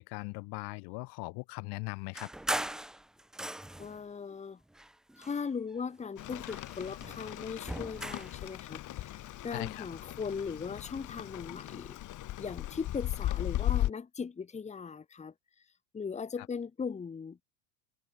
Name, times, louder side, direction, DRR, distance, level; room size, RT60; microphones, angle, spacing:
voice 1, 0.0-2.3 9.5-9.8, left 30 dB, 60° left, 1.7 m, -39 dB
sound 1, 2.1-4.0 4.7-5.9 6.2-8.4, right 1 dB, ahead, 0.3 m, -39 dB
voice 2, 3.8-4.6 5.2-12.0 12.4-15.3 15.9-17.4, left 5 dB, 15° left, 1.6 m, -39 dB
Rain, 6.2-13.9, left 14 dB, 40° left, 2.6 m, -37 dB
supercardioid pair, 130°, 45 cm